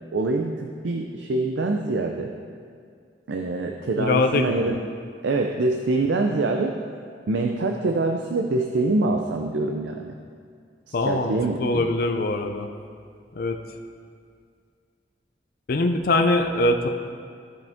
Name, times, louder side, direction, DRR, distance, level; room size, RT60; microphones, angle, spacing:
voice 1, 0.1-2.3 3.3-4.8 5.2-6.7 7.3-10.1 10.9-11.9, right 2 dB, 80° right, 3 dB, 0.5 m, -25 dB
voice 2, 4.0-4.8 10.9-12.7 13.3-13.6 15.7-16.9, left 2 dB, 55° left, 6 dB, 0.5 m, -23 dB
14.5 x 5.3 x 3.5 m, 2.2 s
head